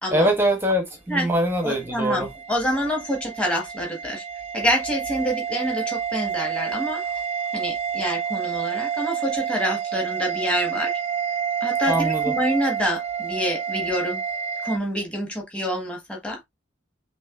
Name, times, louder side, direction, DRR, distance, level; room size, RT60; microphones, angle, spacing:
voice 1, 0.1-2.3 11.9-12.3, equal, 10° right, 0.9 m, -23 dB
voice 2, 1.6-7.2 7.5-11.0 11.6-14.2 14.6-16.4, equal, 5° left, 1.5 m, -27 dB
sound 1, 1.7-14.8, right 8 dB, 30° right, 0.3 m, -29 dB
6.0 x 2.9 x 2.5 m
head